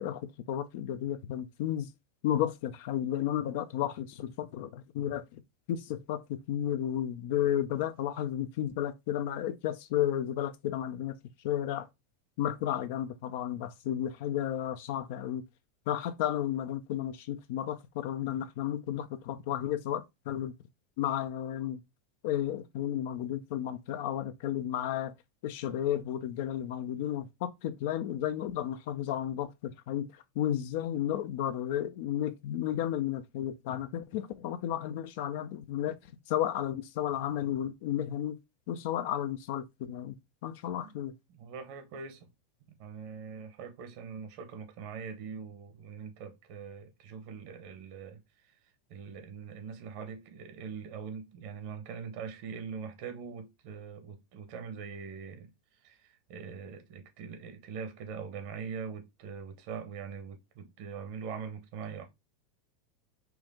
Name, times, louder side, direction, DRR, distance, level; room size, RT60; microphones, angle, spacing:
voice 1, 0.0-1.9 2.2-5.4 5.7-11.1 11.4-11.9 12.4-15.4 15.9-20.5 21.0-21.8 22.2-25.1 25.4-36.0 36.3-38.4 38.7-40.2 40.4-41.1, left 11 dB, 60° left, 0.6 m, -33 dB
voice 2, 41.3-42.3 42.7-48.2 48.9-55.5 55.8-62.0, right 6 dB, 55° right, 1.1 m, -42 dB
4.5 x 2.6 x 3.5 m
hypercardioid pair, 95°, 0 cm